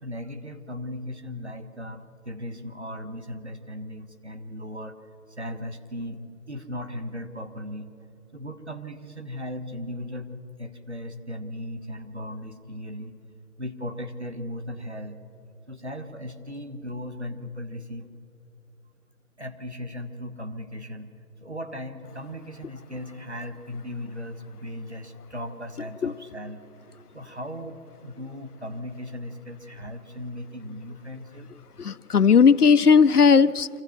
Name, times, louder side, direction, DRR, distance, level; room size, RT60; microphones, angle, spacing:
voice 1, 0.0-5.0 5.3-7.9 8.3-10.3 10.6-13.2 13.6-15.2 15.7-18.1 19.4-21.1 21.4-26.6 27.1-31.5, left 1 dB, 45° right, 7 dB, 1.2 m, -37 dB
voice 2, 31.8-33.7, left 6 dB, 70° left, 16 dB, 0.6 m, -17 dB
24.5 x 15.0 x 7.1 m, 2.7 s
figure-of-eight pair, 170°, 47 cm